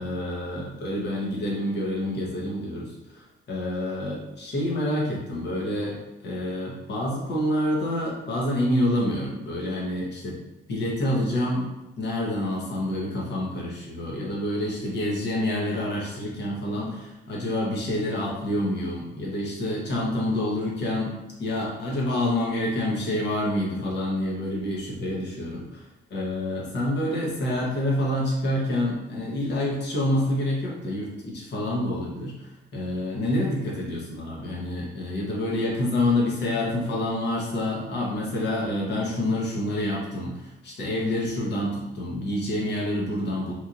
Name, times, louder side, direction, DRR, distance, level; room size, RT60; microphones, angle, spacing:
voice 1, 0.0-10.4 10.7-11.7 12.0-25.8 26.1-32.3 32.7-43.5, left 1 dB, 60° left, -3 dB, 1.0 m, -27 dB
3.0 x 2.5 x 2.5 m, 0.98 s
cardioid pair, 90°, 20 cm